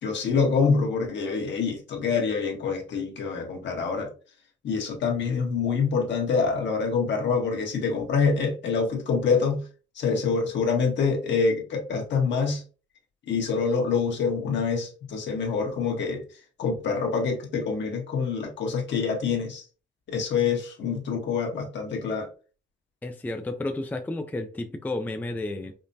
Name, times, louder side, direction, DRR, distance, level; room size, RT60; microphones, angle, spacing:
voice 1, 0.0-4.1 4.6-9.6 9.9-12.6 13.3-16.2 16.6-19.6 20.1-22.3, left 5 dB, 65° left, 1.3 m, -26 dB
voice 2, 23.0-25.7, left 2 dB, 10° left, 0.4 m, -32 dB
5.1 x 2.1 x 2.7 m
cardioid pair, 90°, 20 cm